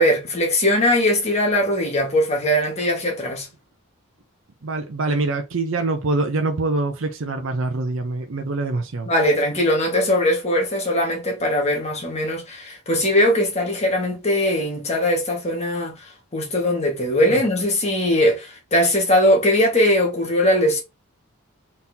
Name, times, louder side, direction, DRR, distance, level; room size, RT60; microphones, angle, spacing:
voice 1, 0.0-3.5 9.1-20.8, left 1 dB, 30° left, 1.5 m, -20 dB
voice 2, 4.6-9.1 17.3-17.4, right 2 dB, 65° right, 0.6 m, -24 dB
4.1 x 4.0 x 2.8 m
head